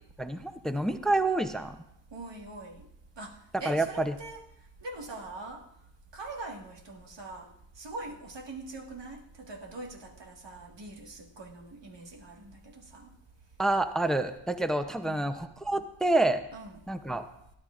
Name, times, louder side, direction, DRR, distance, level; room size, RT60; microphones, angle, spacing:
voice 1, 0.2-1.8 3.7-3.8 13.6-16.4 16.9-17.2, right 2 dB, ahead, 9 dB, 0.6 m, -28 dB
voice 2, 2.1-2.8 3.2-3.3 3.6-4.4 4.8-5.6 6.1-7.5 7.8-13.1 15.1-15.3 16.5-16.8, right 2 dB, 75° right, 2 dB, 1.7 m, -42 dB
22.0 x 11.5 x 2.5 m, 0.77 s
wide cardioid pair, 70°, 43 cm